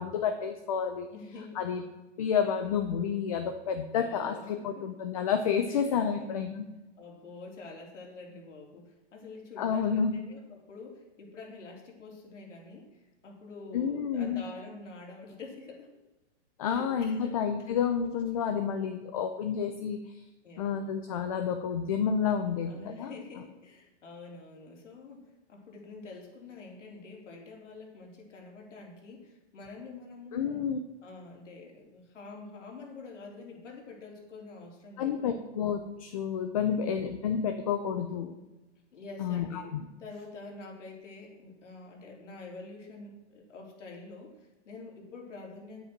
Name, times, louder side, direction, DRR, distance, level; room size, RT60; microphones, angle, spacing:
voice 1, 0.0-1.1 1.6-1.8 2.2-6.6 9.6-10.1 13.7-14.4 16.6-20.0 20.6-22.7 23.0-23.1 30.3-30.8 35.0-38.4 39.2-39.8, left 7 dB, 30° left, 6 dB, 0.6 m, -30 dB
voice 2, 1.1-1.6 4.0-4.9 5.7-6.3 7.0-15.9 16.6-17.7 20.4-20.9 22.7-30.6 31.0-35.2 36.6-36.9 38.9-39.7 40.0-45.8, left 3 dB, 90° left, 0 dB, 3.7 m, -47 dB
9.9 x 8.3 x 6.0 m, 1.0 s
hypercardioid pair, 170°, 36 cm